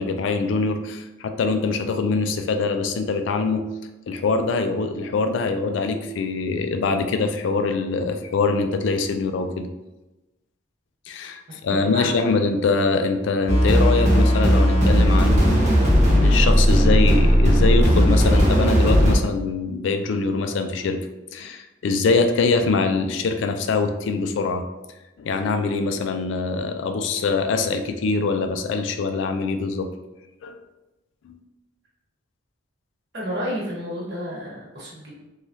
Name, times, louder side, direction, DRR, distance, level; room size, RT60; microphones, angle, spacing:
voice 1, 0.0-3.6 4.1-9.7 11.1-15.6 16.1-21.0 21.3-24.7 25.2-29.9 30.4-30.6 31.2-31.4, left 4 dB, 70° left, 7 dB, 0.3 m, -23 dB
voice 2, 11.8-12.1 33.1-35.2, equal, 60° right, -5 dB, 1.0 m, -31 dB
sound 1, 13.5-19.2, equal, 40° right, 0.9 m, -16 dB
3.1 x 2.3 x 2.6 m, 1.0 s
head